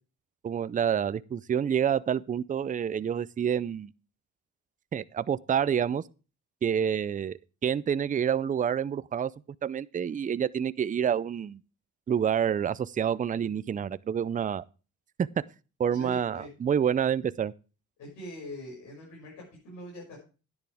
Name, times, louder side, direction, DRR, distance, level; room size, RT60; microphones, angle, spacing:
voice 1, 0.4-3.9 4.9-6.0 6.6-7.3 7.6-9.3 9.6-11.6 12.1-14.6 15.2-15.3 15.8-17.5, right 8 dB, 25° right, 0.4 m, -28 dB
voice 2, 15.9-16.5 18.0-20.2, equal, 85° left, 6.5 m, -43 dB
10.5 x 9.9 x 3.5 m
cardioid pair, 90°, 30 cm